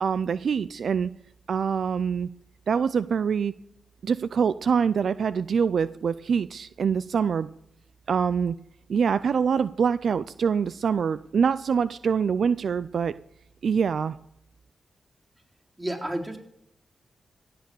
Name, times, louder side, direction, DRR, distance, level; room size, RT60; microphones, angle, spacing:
voice 1, 0.0-1.1 1.5-2.3 2.7-3.5 4.0-7.5 8.1-8.6 8.9-13.1 13.6-14.2, right 6 dB, 70° right, 16 dB, 0.4 m, -25 dB
voice 2, 15.8-16.4, right 1 dB, 25° right, 1 dB, 3.8 m, -30 dB
16.5 x 6.8 x 7.0 m, 0.78 s
supercardioid pair, 40°, 0 cm